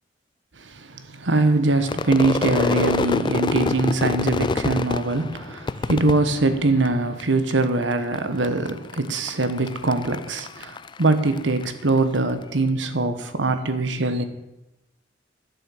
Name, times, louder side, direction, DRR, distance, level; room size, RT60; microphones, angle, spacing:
voice 1, 0.6-14.2, right 2 dB, 80° right, 1.2 m, -22 dB
Crowd / Fireworks, 1.8-7.2 7.5-8.2 8.4-12.0, left 3 dB, 25° left, 0.3 m, -27 dB
11.0 x 7.2 x 7.8 m
head